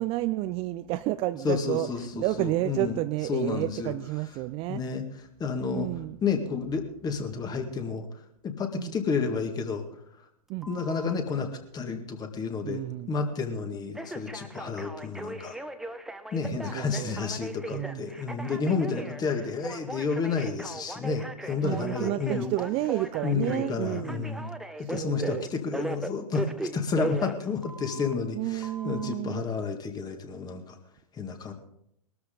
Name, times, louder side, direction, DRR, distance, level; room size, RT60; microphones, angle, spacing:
voice 1, 0.0-4.8 5.7-6.2 8.7-8.9 10.5-10.7 12.6-13.1 16.5-17.2 17.7-18.1 21.6-24.3 24.8-25.5 28.3-29.4, right 17 dB, 30° right, 13 dB, 0.5 m, -31 dB
voice 2, 1.4-2.9 3.3-3.9 4.7-5.0 5.4-5.9 6.2-8.0 8.4-9.8 10.7-11.5 11.7-12.8 13.1-15.6 16.3-22.4 23.2-24.5 24.8-30.8 31.2-31.5, left 5 dB, 20° left, 6 dB, 2.0 m, -30 dB
Telephone, 10.6-11.2 13.9-28.1 28.6-29.1, right 1 dB, ahead, 0.9 m, -38 dB
21.0 x 13.0 x 3.9 m, 0.76 s
figure-of-eight pair, 105°, 19 cm